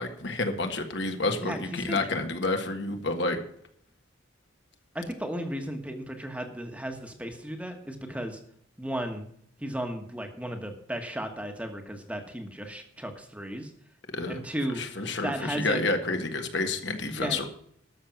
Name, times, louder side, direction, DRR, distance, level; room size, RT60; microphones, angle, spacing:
voice 1, 0.0-3.4 14.1-14.4 14.7-17.5, left 3 dB, 60° left, 5 dB, 1.5 m, -29 dB
voice 2, 1.4-2.0 4.9-8.4 8.8-9.3 9.6-13.7 14.3-14.8 15.2-15.8 17.1-17.4, right 1 dB, 5° right, 5 dB, 1.3 m, -34 dB
13.0 x 6.5 x 7.5 m, 0.67 s
head